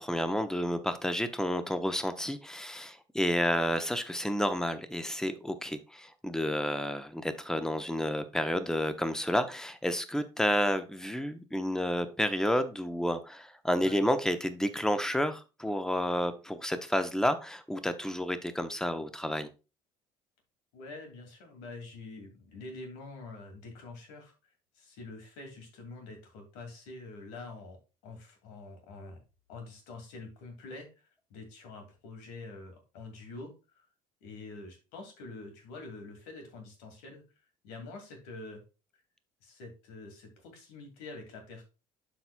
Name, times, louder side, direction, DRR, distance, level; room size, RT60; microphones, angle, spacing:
voice 1, 0.0-19.5, equal, 5° left, 1.0 m, -30 dB
voice 2, 20.7-24.3 24.7-27.8 28.0-29.2 29.5-33.9 34.2-37.2 37.6-38.6 39.4-41.6, left 3 dB, 80° left, 2.3 m, -46 dB
12.0 x 4.3 x 2.3 m
hypercardioid pair, 60°, 16 cm